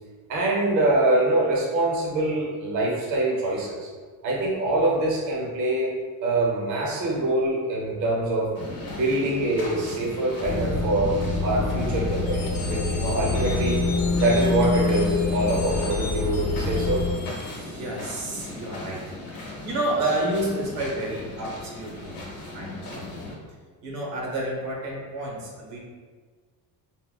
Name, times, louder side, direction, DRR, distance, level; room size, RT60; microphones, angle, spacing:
voice 1, 0.3-3.9 4.2-5.9 6.2-8.5 8.8-11.1 11.4-13.8 14.1-17.0, right 2 dB, 45° right, -2 dB, 0.7 m, -24 dB
sound 1, 8.5-23.3, left 2 dB, 55° left, 0.8 m, -38 dB
sound 2, 10.4-17.1, left 3 dB, 10° left, 0.6 m, -26 dB
sound 3, 12.2-18.0, left 4 dB, 90° left, 0.6 m, -40 dB
voice 2, 17.4-19.1 19.6-22.2 22.5-23.2 23.8-25.8, right 1 dB, 80° right, -2 dB, 0.9 m, -30 dB
3.7 x 2.0 x 2.3 m, 1.5 s
cardioid pair, 160°, 41 cm